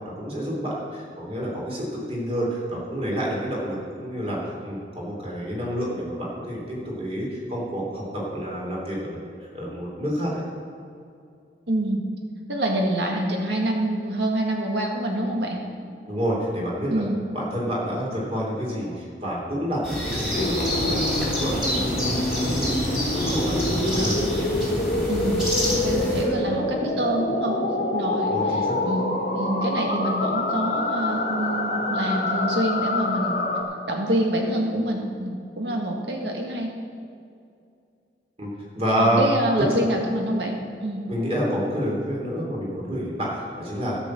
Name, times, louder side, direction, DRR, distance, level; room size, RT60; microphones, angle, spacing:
voice 1, 0.2-9.3 9.5-10.4 16.1-17.0 17.3-21.0 21.3-24.5 28.2-28.8 38.4-38.5 38.7-39.2 39.6-39.7 41.1-44.0, equal, 35° right, -4 dB, 3.2 m, -28 dB
voice 2, 11.7-12.0 12.5-15.6 16.9-17.2 25.1-27.6 27.9-28.6 28.9-33.4 33.8-36.7 39.0-41.0, right 1 dB, 75° right, 1 dB, 1.9 m, -26 dB
sound 1, 19.8-26.2, equal, 5° right, 2.8 m, -28 dB
sound 2, 20.3-33.6, left 1 dB, 55° left, 1.4 m, -26 dB
12.5 x 6.2 x 7.4 m, 2.4 s
head